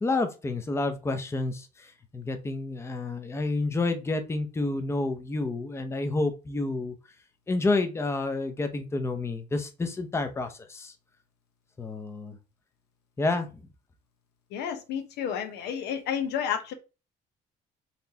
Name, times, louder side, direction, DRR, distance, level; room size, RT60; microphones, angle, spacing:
voice 1, 0.0-1.9 2.1-7.0 7.5-10.9 11.8-12.4 13.2-13.5, left 2 dB, 15° left, 6 dB, 0.6 m, -29 dB
voice 2, 14.5-16.7, left 8 dB, 80° left, 6 dB, 0.8 m, -31 dB
4.2 x 3.2 x 2.8 m, 0.30 s
cardioid pair, 110°, 17 cm